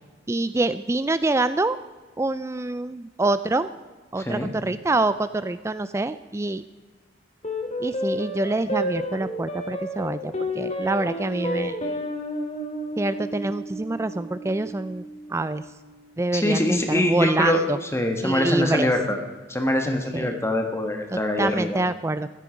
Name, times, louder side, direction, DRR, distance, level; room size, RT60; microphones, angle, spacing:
voice 1, 0.3-1.8 2.2-3.7 4.1-6.6 7.8-11.8 13.0-15.0 15.3-15.6 16.2-17.8 18.2-18.9 20.1-20.4 21.1-22.3, right 2 dB, 15° right, 13 dB, 0.3 m, -26 dB
voice 2, 4.2-4.5 16.3-19.2 19.5-21.8, left 1 dB, 15° left, 4 dB, 1.5 m, -24 dB
sound 1, 7.4-16.1, equal, 35° left, 2.3 m, -31 dB
16.0 x 13.0 x 5.1 m, 1.3 s
head